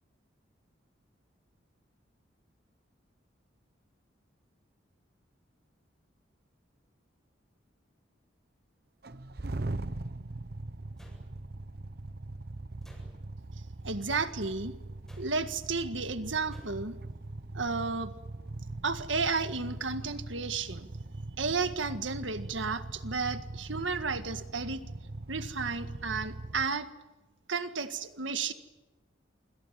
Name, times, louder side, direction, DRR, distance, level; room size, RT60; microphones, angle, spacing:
sound 1, 9.0-26.7, right 2 dB, 50° right, 1.0 m, -41 dB
sound 2, 11.0-11.7 12.8-13.5 15.1-15.6 16.5-17.0, equal, 5° left, 7.8 m, -58 dB
voice 1, 13.8-14.7 15.2-17.0 17.5-18.1 18.8-20.9 21.4-24.8 25.3-26.9 27.5-28.5, right 4 dB, 75° right, 9 dB, 1.8 m, -32 dB
27.0 x 26.0 x 7.6 m, 1.1 s
head